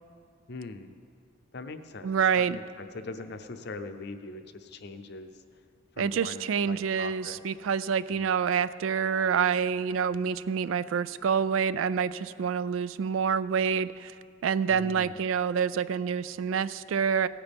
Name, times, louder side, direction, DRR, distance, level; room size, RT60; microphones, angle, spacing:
voice 1, 0.5-1.0 1.5-5.4 6.0-7.4 8.1-8.4 14.7-15.2, left 3 dB, 60° left, 9 dB, 0.6 m, -42 dB
voice 2, 2.0-2.6 6.0-14.1 14.4-17.3, right 7 dB, 85° right, 16 dB, 0.3 m, -27 dB
17.0 x 9.6 x 3.5 m, 2.2 s
head